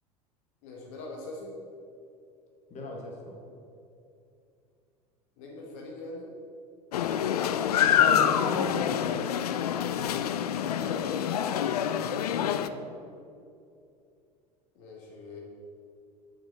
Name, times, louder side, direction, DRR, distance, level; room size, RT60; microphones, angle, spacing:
voice 1, 0.6-1.5 5.4-6.3 10.4-11.7 14.8-15.4, left 2 dB, 55° left, -2 dB, 1.6 m, -43 dB
voice 2, 2.7-3.4 7.8-9.2 12.7-13.0, left 1 dB, 35° left, -1 dB, 1.7 m, -37 dB
sound 1, 6.9-12.7, left 9 dB, 70° left, 0.4 m, -26 dB
7.4 x 6.2 x 6.3 m, 2.6 s
figure-of-eight pair, 75°, 20 cm